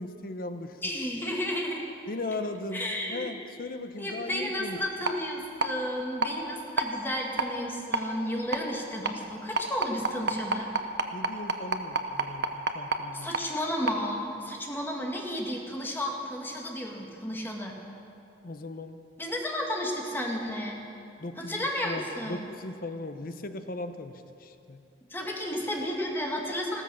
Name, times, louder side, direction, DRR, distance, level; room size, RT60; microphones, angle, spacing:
voice 1, 0.0-0.8 2.1-4.8 11.1-13.3 18.4-19.0 21.2-24.8, left 2 dB, 55° left, 9 dB, 0.9 m, -38 dB
voice 2, 0.8-1.9 2.7-3.3 4.0-10.7 13.1-17.7 19.2-20.8 21.4-22.5 25.1-26.8, equal, 10° left, -1 dB, 2.0 m, -32 dB
sound 1, 5.1-5.2 5.6-5.7 6.2-6.3 6.8-6.9 7.4-7.5 7.9-8.0 8.5-8.6 9.1-9.2 9.6-13.0 13.3-13.4 13.9-14.0, right 4 dB, 65° right, 1.0 m, -26 dB
15.5 x 14.0 x 6.3 m, 2.5 s
head